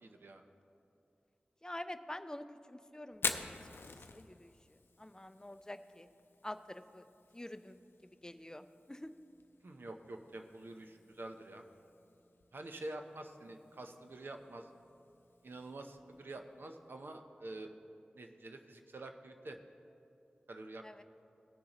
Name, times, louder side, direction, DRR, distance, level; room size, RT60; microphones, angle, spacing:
voice 1, 0.0-0.4 9.6-11.6 12.5-14.7 15.4-17.7 18.1-19.6 20.5-21.0, right 2 dB, 75° right, 5 dB, 0.7 m, -47 dB
voice 2, 1.6-3.6 4.1-6.1 6.4-7.1 7.3-7.8 8.2-9.1 20.8-21.0, left 1 dB, 20° left, 10 dB, 0.4 m, -47 dB
Fire, 3.1-17.0, left 4 dB, 85° left, 0.5 m, -48 dB
19.0 x 6.4 x 3.0 m, 2.7 s
cardioid pair, 40°, 4 cm